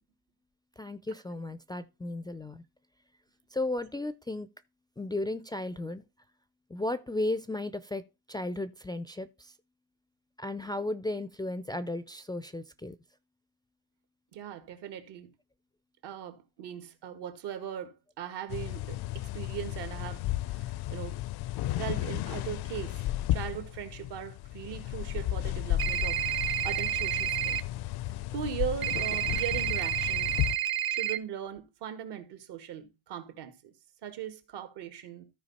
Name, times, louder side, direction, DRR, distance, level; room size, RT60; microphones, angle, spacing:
voice 1, 0.8-2.6 3.5-4.5 5.0-6.0 6.7-8.0 8.3-9.5 10.4-13.0, left 2 dB, 10° left, 0.4 m, -34 dB
voice 2, 14.3-15.3 16.0-21.2 21.8-27.6 28.3-30.4 30.9-33.7 34.0-35.2, right 10 dB, 75° right, 2.0 m, -39 dB
sound 1, 18.5-30.5, left 15 dB, 65° left, 0.5 m, -34 dB
sound 2, 25.8-27.6 28.8-31.2, right 12 dB, 60° right, 0.9 m, -30 dB
13.5 x 4.8 x 4.1 m
cardioid pair, 115°, 41 cm